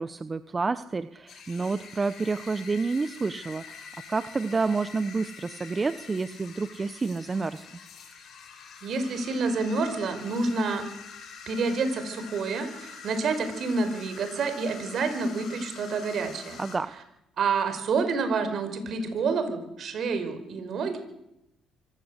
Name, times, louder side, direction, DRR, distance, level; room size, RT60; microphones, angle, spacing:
voice 1, 0.0-7.7 16.6-16.9, right 4 dB, 30° right, 13 dB, 1.0 m, -29 dB
sound 1, 1.3-16.8, left 6 dB, 60° left, 6.2 m, -46 dB
voice 2, 8.8-10.9 11.5-16.6 17.4-21.0, right 4 dB, 60° right, 8 dB, 5.4 m, -28 dB
24.5 x 16.0 x 8.3 m, 0.87 s
supercardioid pair, 70°, 0 cm